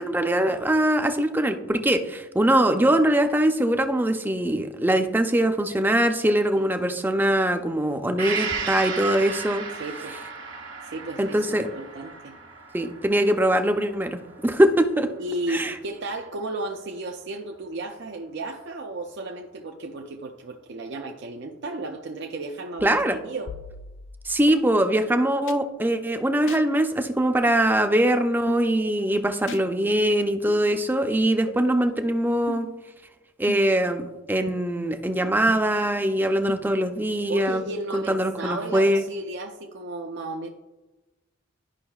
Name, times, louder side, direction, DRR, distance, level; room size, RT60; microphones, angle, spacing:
voice 1, 0.0-9.6 11.2-11.7 12.7-14.2 14.4-15.1 15.5-15.7 22.8-23.2 24.3-32.7 33.4-37.6 37.9-39.0, right 1 dB, 10° right, 6 dB, 0.4 m, -22 dB
Gong, 8.2-15.8 16.2-16.3, right 5 dB, 90° right, 1.2 m, -35 dB
voice 2, 9.7-10.2 10.8-12.4 15.2-23.5 37.3-40.5, right 2 dB, 60° right, 3 dB, 0.5 m, -34 dB
sound 1, 22.8-24.5 25.5-25.6 26.5-26.6 27.5-27.6 28.5-28.7 29.5-29.6 30.5-30.6 31.5-31.6 32.5-32.8 33.5-33.8 34.5-34.9 35.5-35.6 36.5-36.6 37.5-37.6, left 4 dB, 70° left, 0.5 m, -38 dB
11.5 x 5.4 x 2.3 m, 1.1 s
head